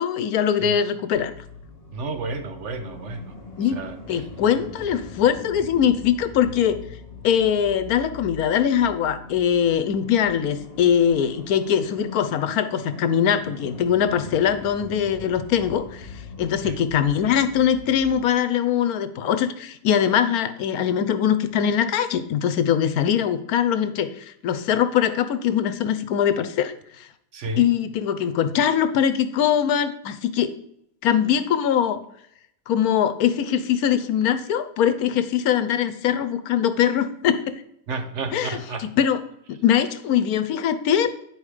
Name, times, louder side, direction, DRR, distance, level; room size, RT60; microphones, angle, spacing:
voice 1, 0.0-1.3 3.6-3.8 4.1-6.8 7.2-16.1 16.4-27.1 27.6-30.5 31.0-32.0 32.7-37.5 38.3-39.2 39.5-41.1, left 9 dB, 85° left, 1.2 m, -22 dB
sound 1, 1.1-18.3, left 3 dB, 30° left, 1.1 m, -41 dB
voice 2, 1.9-3.3 3.7-4.3 16.6-16.9 27.3-27.7 37.9-38.9, right 3 dB, 60° right, 1.1 m, -31 dB
9.7 x 4.8 x 4.8 m
omnidirectional pair, 1.5 m